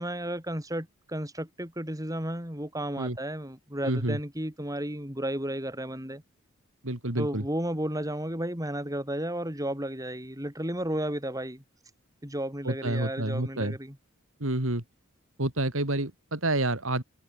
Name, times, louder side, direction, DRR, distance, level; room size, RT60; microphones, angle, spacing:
voice 1, 0.0-6.2 7.2-11.6 12.2-14.0, right 1 dB, 15° right, 8.0 m, -33 dB
voice 2, 3.8-4.2 6.8-7.4 12.7-13.8 14.4-14.8 15.4-17.0, right 1 dB, 80° right, 3.6 m, -28 dB
head